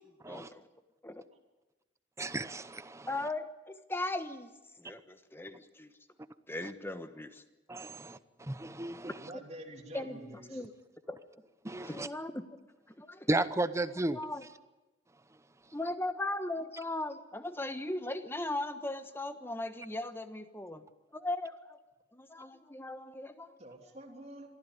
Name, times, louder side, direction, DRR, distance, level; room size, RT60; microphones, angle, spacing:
voice 1, 0.2-0.6 1.0-1.2 3.1-4.5 4.8-5.9 6.5-7.4 9.9-10.7 11.1-11.2 11.9-12.6 13.0-13.4 13.9-14.5 15.7-20.8 21.1-21.8 22.1-23.6, left 2 dB, 15° left, 10 dB, 1.2 m, -38 dB
voice 2, 2.2-3.1 7.7-8.2 8.5-9.1 11.6-12.1 13.3-14.2, right 2 dB, 15° right, 13 dB, 0.8 m, -33 dB
voice 3, 9.2-10.6 23.6-24.5, right 1 dB, 35° right, 3 dB, 3.1 m, -47 dB
23.5 x 14.5 x 9.9 m, 1.1 s
head